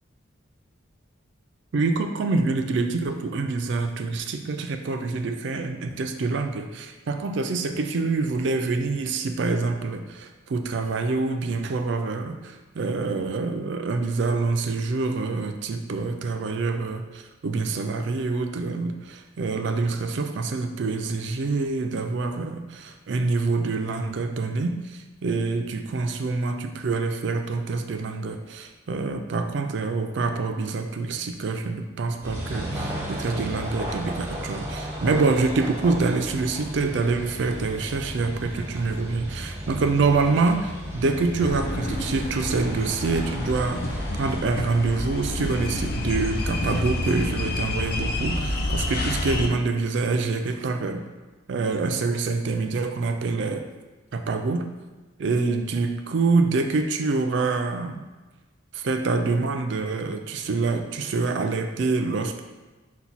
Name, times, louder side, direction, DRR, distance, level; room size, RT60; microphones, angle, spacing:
voice 1, 1.7-51.0 51.5-53.7 54.1-54.7 55.2-58.0 58.7-62.4, right 3 dB, 60° right, 6 dB, 0.4 m, -26 dB
sound 1, 32.2-44.4, equal, 10° right, 0.7 m, -34 dB
sound 2, 41.4-49.5, left 2 dB, 45° left, 0.4 m, -29 dB
5.7 x 2.2 x 4.0 m, 1.2 s
head